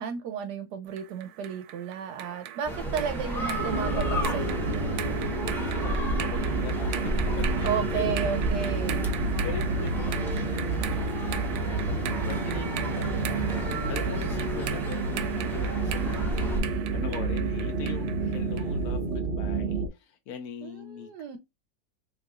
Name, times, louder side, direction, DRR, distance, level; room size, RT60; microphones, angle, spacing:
voice 1, 0.0-4.7 7.6-9.1 20.6-21.4, right 7 dB, 70° right, 1.1 m, -33 dB
sound 1, 1.0-18.8, right 11 dB, 90° right, 1.4 m, -39 dB
sound 2, 2.6-16.6, right 1 dB, ahead, 0.8 m, -33 dB
sound 3, 3.6-19.9, right 3 dB, 45° right, 0.9 m, -30 dB
voice 2, 5.3-8.3 8.5-8.7 9.2-21.1, left 7 dB, 75° left, 0.8 m, -42 dB
3.6 x 3.3 x 2.3 m
omnidirectional pair, 2.1 m